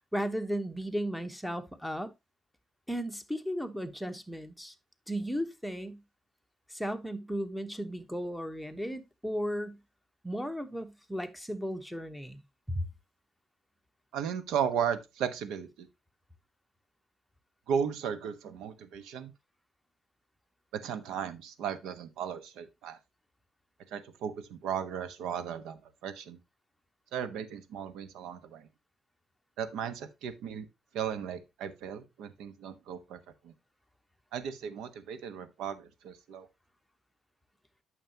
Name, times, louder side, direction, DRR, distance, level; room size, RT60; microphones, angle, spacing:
voice 1, 0.1-2.1 2.9-4.7 5.1-6.0 6.7-9.8 10.2-12.4 12.7-12.9, equal, ahead, 1.0 m, -35 dB
voice 2, 14.1-15.9 17.7-19.3 20.7-23.0 23.9-26.4 27.1-28.7 29.6-30.7 30.9-33.5 34.3-36.5, right 8 dB, 85° right, 1.0 m, -35 dB
9.2 x 6.5 x 2.8 m
cardioid pair, 110°, 0 cm